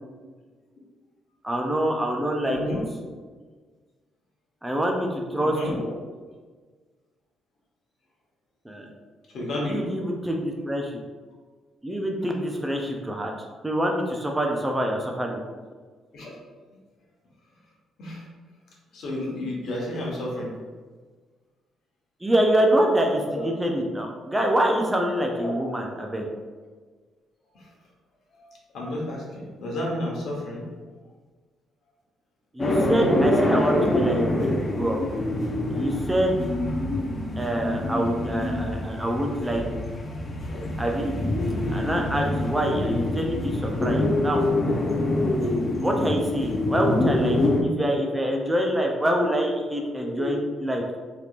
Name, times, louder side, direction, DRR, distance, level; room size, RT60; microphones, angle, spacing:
voice 1, 1.4-2.6 4.6-5.8 8.7-8.9 9.7-11.0 11.8-13.3 13.6-15.4 22.2-26.3 32.5-35.0 35.7-36.3 37.4-39.6 40.8-41.1 41.7-44.4 45.8-51.0, right 1 dB, 15° right, 1 dB, 0.5 m, -25 dB
voice 2, 2.4-2.8 5.4-5.9 9.3-9.8 16.1-16.4 18.0-18.2 18.9-20.5 23.3-23.4 25.4-25.7 27.5-27.7 28.3-28.5 28.7-30.6 36.8-36.9 38.9-39.0 40.5-40.6 50.0-50.3, left 1 dB, 70° left, -4 dB, 1.1 m, -31 dB
sound 1, 32.6-47.6, left 1 dB, 30° left, 0.5 m, -25 dB
3.4 x 2.9 x 2.4 m, 1.4 s
cardioid pair, 90°, 0 cm